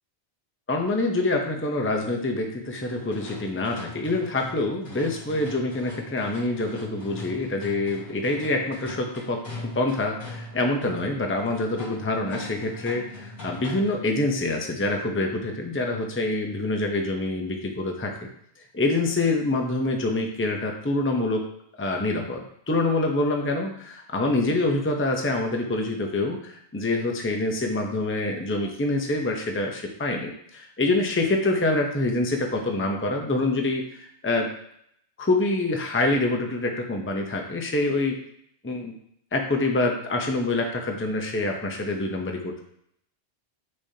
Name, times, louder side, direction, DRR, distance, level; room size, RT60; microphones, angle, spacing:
voice 1, 0.7-9.4 9.7-18.1 18.7-21.4 21.8-34.5 35.2-38.2 38.6-38.9 39.3-42.6, left 2 dB, 15° left, 2 dB, 0.7 m, -26 dB
sound 1, 2.9-14.1, left 2 dB, 65° left, 3.1 m, -41 dB
8.4 x 6.4 x 2.8 m, 0.71 s
omnidirectional pair, 1.1 m